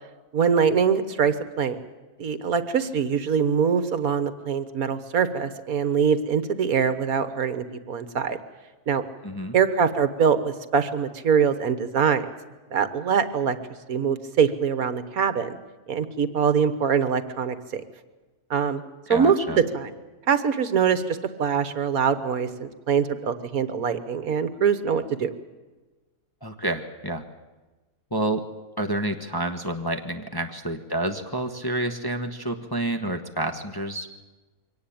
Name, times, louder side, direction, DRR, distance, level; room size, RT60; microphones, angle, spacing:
voice 1, 0.3-1.8 2.2-8.4 8.9-9.0 9.5-12.3 12.7-13.6 13.9-15.5 15.9-17.8 18.5-18.8 19.1-19.3 19.7-19.9 20.3-25.3, right 6 dB, 65° right, 12 dB, 1.6 m, -23 dB
voice 2, 9.2-9.6 19.1-19.6 26.4-27.2 28.1-28.4 28.8-34.1, right 1 dB, 15° left, 3 dB, 1.1 m, -29 dB
23.5 x 18.5 x 8.7 m, 1.2 s
omnidirectional pair, 1.7 m